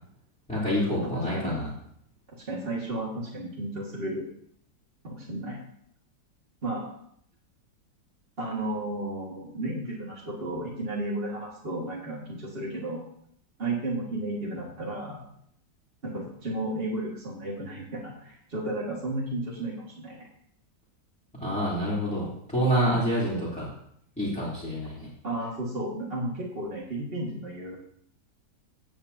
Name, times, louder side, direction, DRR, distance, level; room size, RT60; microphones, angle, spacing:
voice 1, 0.5-1.7 21.3-23.7 24.2-25.1, equal, 5° left, -10 dB, 3.4 m, -27 dB
voice 2, 1.1-1.6 2.3-4.3 5.0-5.6 6.6-6.9 8.4-13.0 13.6-15.2 16.0-20.3 25.2-27.8, right 1 dB, 35° right, -5 dB, 2.1 m, -33 dB
17.0 x 8.7 x 2.8 m, 0.67 s
omnidirectional pair, 1.8 m